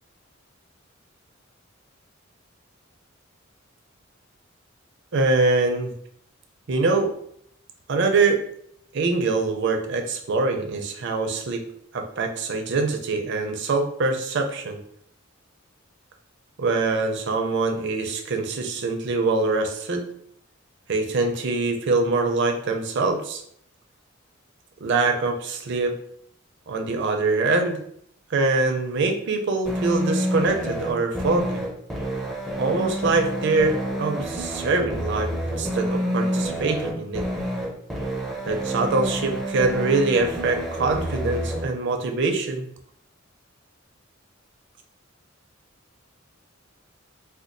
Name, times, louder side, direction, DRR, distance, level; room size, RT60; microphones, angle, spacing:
voice 1, 5.1-5.9 6.7-7.1 7.9-8.4 8.9-11.6 11.9-14.8 16.6-20.0 20.9-23.4 24.8-25.9 26.7-27.8 28.3-31.6 32.6-37.2 38.5-42.7, right 3 dB, 60° right, 4 dB, 0.5 m, -24 dB
sound 1, 29.7-41.7, equal, ahead, 0.5 m, -28 dB
4.3 x 2.2 x 2.6 m, 0.68 s
head